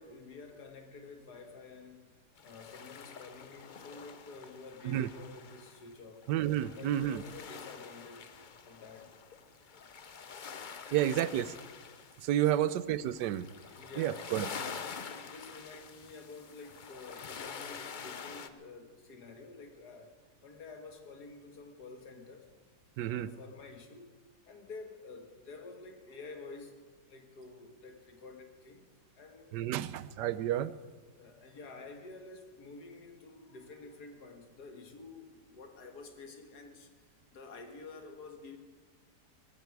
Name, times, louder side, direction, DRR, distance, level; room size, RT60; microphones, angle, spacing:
voice 1, 0.0-6.3 6.8-9.1 10.8-11.2 12.3-12.7 13.8-14.5 15.0-20.1 20.4-22.5 23.0-24.2 24.4-26.8 27.1-28.9 29.2-29.8 30.3-30.4 31.1-36.9 37.3-38.6, left 3 dB, 70° left, 6 dB, 2.2 m, -50 dB
sound 1, 2.4-18.5, left 6 dB, 50° left, 0.5 m, -47 dB
voice 2, 6.3-7.2 10.9-11.5 12.2-13.5 14.0-14.5 23.0-23.3 29.5-30.7, right 12 dB, 85° right, 17 dB, 1.3 m, -30 dB
19.0 x 15.5 x 4.7 m, 1.4 s
omnidirectional pair, 1.8 m